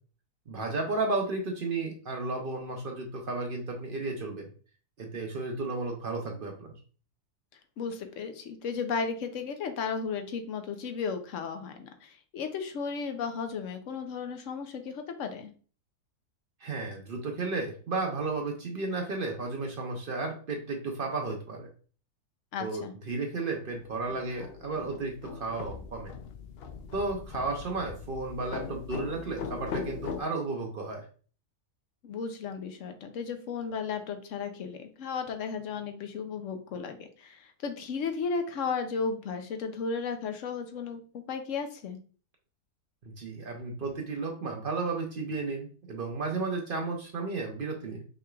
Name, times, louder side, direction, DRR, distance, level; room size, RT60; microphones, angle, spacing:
voice 1, 0.5-4.4 5.0-6.8 16.6-21.7 22.6-26.1 26.9-31.0 43.0-48.1, right 3 dB, 55° right, 2 dB, 0.6 m, -33 dB
voice 2, 7.8-15.5 22.5-22.9 32.0-42.0, left 5 dB, 60° left, 7 dB, 0.9 m, -34 dB
sound 1, 23.7-30.2, left 6 dB, 80° left, 0.5 m, -40 dB
5.8 x 3.3 x 2.3 m, 0.40 s
omnidirectional pair, 1.6 m